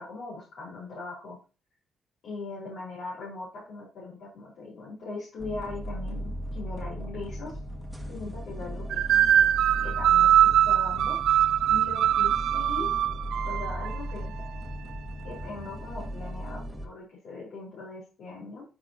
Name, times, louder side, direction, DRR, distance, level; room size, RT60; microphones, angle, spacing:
voice 1, 0.0-1.4 2.2-7.6 8.1-9.0 9.8-11.2 11.7-12.9 13.4-14.3 15.2-18.6, left 3 dB, 65° left, -7 dB, 4.5 m, -40 dB
sound 1, 5.4-16.9, equal, 5° right, 2.2 m, -37 dB
sound 2, 8.9-14.0, right 11 dB, 65° right, 0.4 m, -22 dB
11.0 x 8.1 x 2.9 m, 0.34 s
hypercardioid pair, 45°, 0 cm